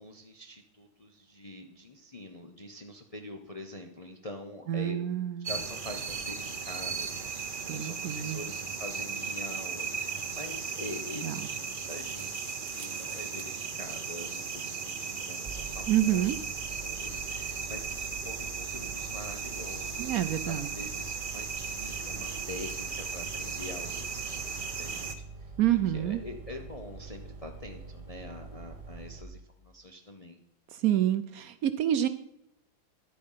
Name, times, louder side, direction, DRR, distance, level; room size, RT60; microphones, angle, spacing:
voice 1, 0.0-5.0 5.4-16.3 16.8-20.1 20.5-24.4 24.8-25.5 25.9-30.4, left 1 dB, 75° left, 3 dB, 0.3 m, -45 dB
voice 2, 4.7-5.5 7.7-8.4 11.2-11.3 15.9-16.4 20.0-20.7 25.6-26.2 30.7-32.1, right 12 dB, 75° right, 11 dB, 0.8 m, -27 dB
sound 1, 5.4-25.1, right 5 dB, 45° right, 0.7 m, -36 dB
sound 2, 15.5-29.2, right 4 dB, 20° right, 1.0 m, -45 dB
11.0 x 8.6 x 5.6 m, 0.75 s
omnidirectional pair, 2.1 m